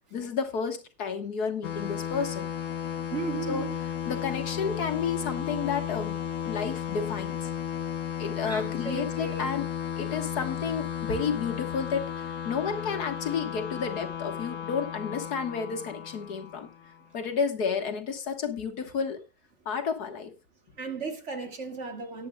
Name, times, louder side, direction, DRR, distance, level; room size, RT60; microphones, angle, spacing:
voice 1, 0.1-2.5 3.5-3.6 4.1-7.5 8.2-9.7 10.0-16.7 17.1-19.2 19.7-20.3, left 6 dB, 75° left, 2.0 m, -31 dB
sound 1, 1.6-17.0, left 9 dB, 55° left, 1.2 m, -34 dB
voice 2, 3.1-3.7 8.4-9.5 20.8-22.3, right 4 dB, 45° right, 2.0 m, -35 dB
18.0 x 10.5 x 2.3 m
omnidirectional pair, 1.7 m